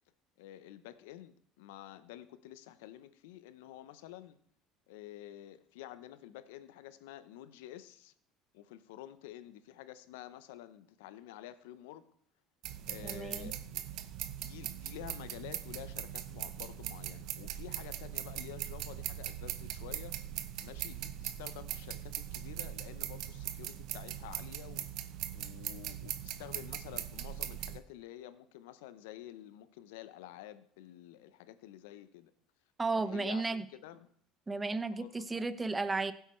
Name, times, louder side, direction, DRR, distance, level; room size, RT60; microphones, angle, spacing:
voice 1, 0.4-4.4 4.9-8.1 8.5-12.1 12.9-13.8 14.4-20.2 20.6-24.9 25.3-32.3 32.9-34.1 35.0-35.5, left 13 dB, 85° left, 0.7 m, -50 dB
sound 1, 12.6-27.8, right 12 dB, 70° right, 0.6 m, -40 dB
voice 2, 13.0-13.5 32.8-33.6 34.5-36.1, right 3 dB, 20° right, 0.8 m, -34 dB
15.5 x 8.2 x 3.1 m
supercardioid pair, 80°, 0 cm